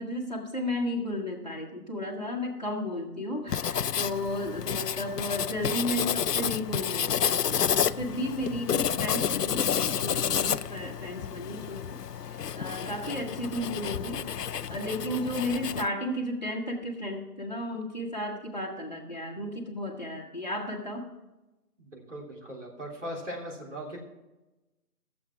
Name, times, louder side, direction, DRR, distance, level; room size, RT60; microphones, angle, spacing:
voice 1, 0.0-12.0 12.3-14.4 14.7-21.1, left 1 dB, 25° left, -1 dB, 1.5 m, -34 dB
Writing, 3.5-15.9, left 8 dB, 85° left, 0.6 m, -30 dB
voice 2, 21.8-24.0, equal, 50° right, -2 dB, 3.4 m, -39 dB
13.5 x 7.5 x 5.8 m, 1.0 s
figure-of-eight pair, 180°, 46 cm